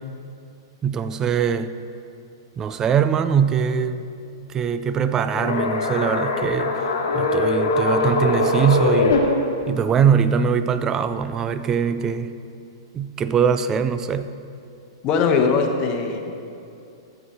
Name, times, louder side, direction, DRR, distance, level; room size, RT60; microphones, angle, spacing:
voice 1, 0.8-1.7 2.6-4.0 4.4-9.2 9.7-12.3 12.9-14.3, right 7 dB, 25° right, 11 dB, 0.4 m, -22 dB
sound 1, 5.3-9.2, left 3 dB, 65° left, 1.3 m, -21 dB
voice 2, 15.0-16.4, left 5 dB, 35° left, 4 dB, 1.1 m, -20 dB
12.5 x 8.2 x 3.9 m, 2.6 s
figure-of-eight pair, 105°, 2 cm